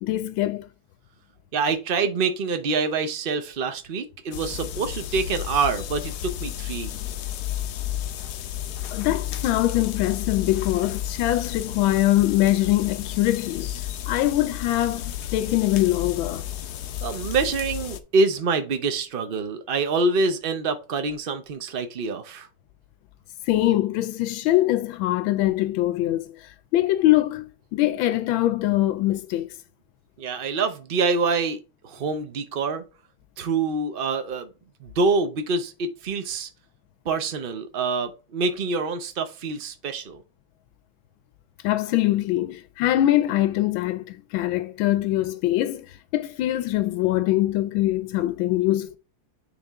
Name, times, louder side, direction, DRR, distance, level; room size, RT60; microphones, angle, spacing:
voice 1, 0.0-0.7 8.9-13.7 14.1-16.4 23.5-26.3 26.7-29.5 41.6-49.0, left 15 dB, 85° left, 1.4 m, -23 dB
voice 2, 1.5-6.9 17.0-22.5 30.2-32.8 33.4-34.5 34.8-36.5 37.0-40.2, right 4 dB, 85° right, 0.4 m, -26 dB
sound 1, 4.3-18.0, left 11 dB, 65° left, 1.1 m, -32 dB
9.5 x 3.5 x 3.5 m
omnidirectional pair, 2.1 m